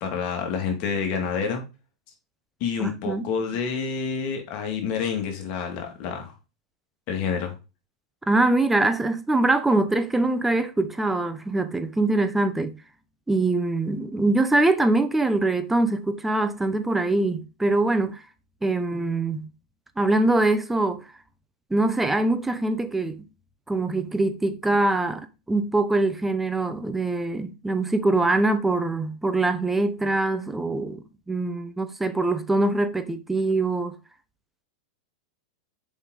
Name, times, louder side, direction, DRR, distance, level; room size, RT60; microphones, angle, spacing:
voice 1, 0.0-1.6 2.6-6.3 7.1-7.6, left 6 dB, 45° left, 2.4 m, -28 dB
voice 2, 2.8-3.3 8.3-12.8 13.3-18.2 18.6-19.5 20.0-21.0 21.7-23.2 23.7-33.9, right 2 dB, 10° right, 0.9 m, -23 dB
7.0 x 5.3 x 4.1 m
hypercardioid pair, 95°, 3 cm